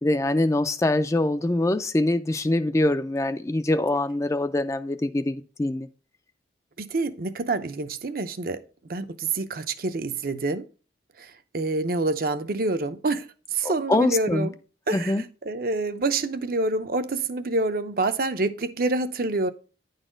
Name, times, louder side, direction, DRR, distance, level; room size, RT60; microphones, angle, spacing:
voice 1, 0.0-5.9 13.6-14.5 14.9-15.2, left 2 dB, 15° left, 0.4 m, -24 dB
voice 2, 6.8-8.6 8.9-10.7 11.2-14.5 14.9-19.5, right 2 dB, 55° right, 0.7 m, -27 dB
9.9 x 4.1 x 5.0 m
head